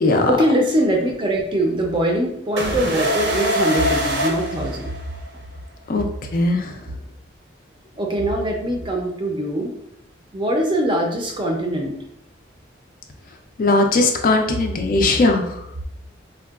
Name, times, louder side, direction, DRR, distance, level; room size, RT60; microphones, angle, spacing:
voice 1, 0.3-4.9 8.0-9.7 10.3-11.9, right 1 dB, 25° right, 1 dB, 0.4 m, -22 dB
sound 1, 2.6-5.4, equal, 75° right, 0.7 m, -23 dB
voice 2, 13.6-15.4, left 2 dB, 45° left, 4 dB, 0.3 m, -18 dB
3.5 x 2.2 x 2.3 m, 0.80 s
head